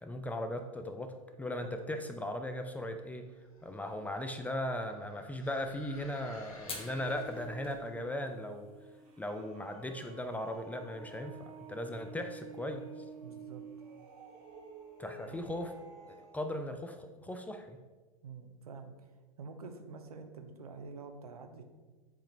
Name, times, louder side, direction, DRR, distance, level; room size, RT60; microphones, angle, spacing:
voice 1, 0.0-3.3 3.6-8.7 9.2-12.8 15.0-15.7 16.1-17.8, left 1 dB, 10° left, 7 dB, 0.3 m, -38 dB
sound 1, 3.4-7.8, left 2 dB, 70° left, 1.0 m, -56 dB
sound 2, 5.9-16.4, right 4 dB, 40° right, 1.3 m, -51 dB
Fire, 6.6-15.8, left 3 dB, 30° left, 1.0 m, -54 dB
voice 2, 13.2-13.6 15.2-15.4 18.2-19.1 19.4-21.6, right 4 dB, 90° right, 6 dB, 0.6 m, -47 dB
7.1 x 2.5 x 3.0 m, 1.3 s
hypercardioid pair, 90°, 19 cm